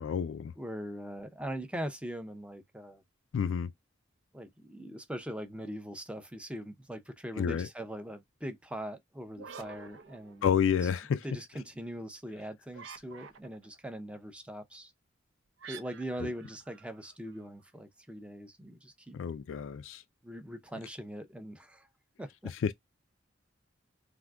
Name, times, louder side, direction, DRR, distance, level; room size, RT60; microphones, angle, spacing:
voice 1, 0.0-0.5 3.3-3.7 7.4-7.7 10.4-11.2 16.2-16.3 19.1-20.0 22.6-22.7, left 7 dB, 80° left, 0.3 m, -29 dB
voice 2, 0.6-3.0 4.3-10.5 10.8-10.9 11.2-14.9 15.7-19.2 20.2-21.9 22.2-22.5, equal, 5° right, 0.5 m, -41 dB
sound 1, 9.3-10.9 12.7-13.8 15.6-17.5, right 6 dB, 75° right, 0.6 m, -49 dB
3.6 x 2.6 x 2.3 m
head